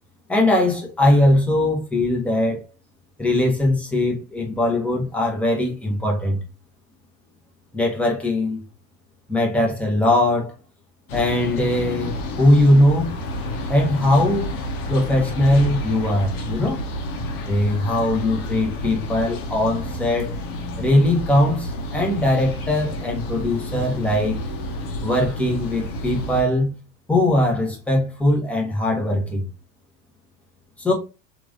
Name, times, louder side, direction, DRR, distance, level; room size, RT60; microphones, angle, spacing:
voice 1, 0.3-2.6 3.2-6.4 7.7-8.6 9.3-10.5 11.1-13.1 13.7-14.5 14.9-16.8 17.5-20.3 20.8-24.4 25.0-26.7 27.1-29.5 30.8-30.9, left 1 dB, 5° left, 0.8 m, -20 dB
sound 1, 11.1-26.4, left 1 dB, 60° left, 0.8 m, -30 dB
3.0 x 2.5 x 2.5 m
figure-of-eight pair, 85°, 49 cm